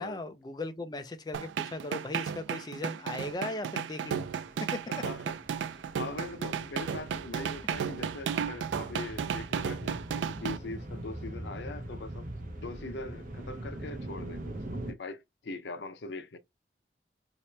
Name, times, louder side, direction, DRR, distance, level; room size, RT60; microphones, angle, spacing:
voice 1, 0.0-4.3 4.6-4.9, left 2 dB, 20° left, 0.5 m, -38 dB
sound 1, 1.3-10.6, right 7 dB, 85° right, 0.3 m, -34 dB
sound 2, 4.1-14.9, right 1 dB, 45° right, 0.8 m, -43 dB
voice 2, 4.9-5.4 6.0-12.3 12.6-16.4, left 3 dB, 75° left, 0.6 m, -41 dB
2.9 x 2.9 x 3.2 m
head